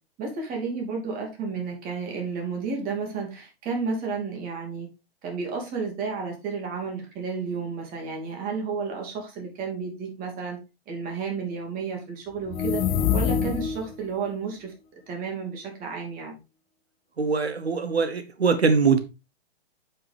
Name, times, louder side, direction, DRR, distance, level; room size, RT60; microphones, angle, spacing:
voice 1, 0.2-4.9 5.2-10.6 10.9-12.8 13.1-14.7 15.1-16.4, right 5 dB, 30° right, 2.7 m, -32 dB
sound 1, 12.4-14.0, left 8 dB, 10° left, 0.3 m, -25 dB
voice 2, 17.2-19.0, right 5 dB, 90° right, 0.9 m, -22 dB
8.3 x 5.8 x 3.4 m
figure-of-eight pair, 120°, 31 cm